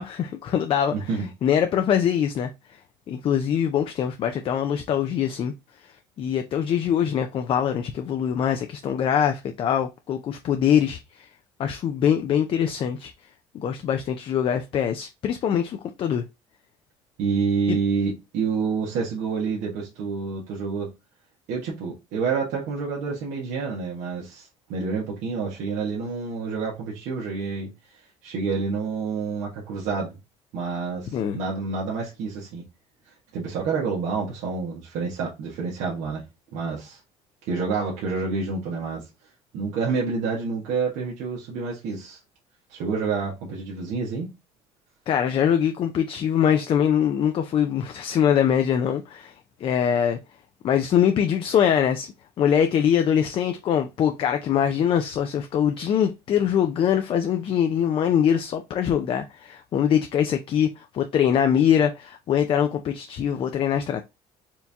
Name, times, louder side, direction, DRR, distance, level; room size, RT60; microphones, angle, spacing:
voice 1, 0.0-0.9 1.4-2.5 3.1-5.5 6.2-11.3 11.6-13.1 13.5-16.2 17.7-17.8 31.1-31.4 45.1-49.3 49.6-50.2 50.6-64.0, left 9 dB, 45° left, 0.5 m, -23 dB
voice 2, 0.9-1.3 17.2-20.9 21.5-27.7 28.2-30.1 30.5-32.6 33.3-36.2 36.5-37.0 37.4-39.0 39.5-42.2 42.7-44.3, right 5 dB, 75° right, 1.4 m, -28 dB
4.5 x 2.8 x 3.5 m
cardioid pair, 105°, 12 cm